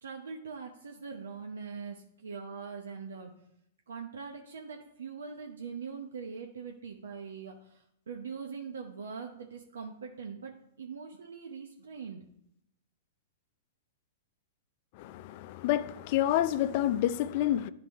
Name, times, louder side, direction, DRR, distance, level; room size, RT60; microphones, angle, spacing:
voice 1, 0.0-3.3 3.9-12.2, right 5 dB, 85° right, 0.8 m, -42 dB
voice 2, 14.9-17.7, left 12 dB, 50° left, 0.4 m, -28 dB
9.7 x 3.9 x 4.6 m
hypercardioid pair, 125°, 0 cm